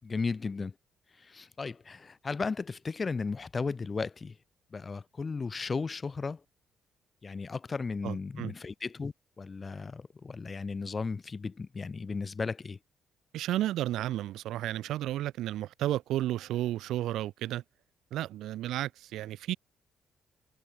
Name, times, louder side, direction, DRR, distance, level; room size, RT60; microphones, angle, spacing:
voice 1, 0.0-0.7 1.2-4.4 4.7-6.4 7.2-12.8, left 4 dB, 30° left, 3.9 m, -35 dB
voice 2, 8.0-8.5 13.3-17.6 18.1-19.6, right 14 dB, 85° right, 0.4 m, -32 dB
cardioid pair, 90°, 0 cm